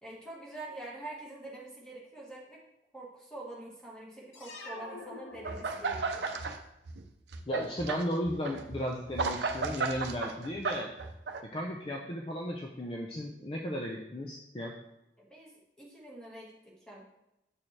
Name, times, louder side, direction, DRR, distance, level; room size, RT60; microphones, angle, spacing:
voice 1, 0.0-2.6 2.9-6.4 15.2-17.0, right 2 dB, 5° left, -5 dB, 1.6 m, -46 dB
sound 1, 4.3-6.2, left 3 dB, 90° left, 0.9 m, -46 dB
sound 2, 5.4-6.6 6.9-11.4, right 4 dB, 70° right, 0.6 m, -34 dB
voice 2, 7.5-10.9 11.5-14.7, equal, 30° left, 0 dB, 0.6 m, -35 dB
7.3 x 6.5 x 3.3 m, 0.90 s
head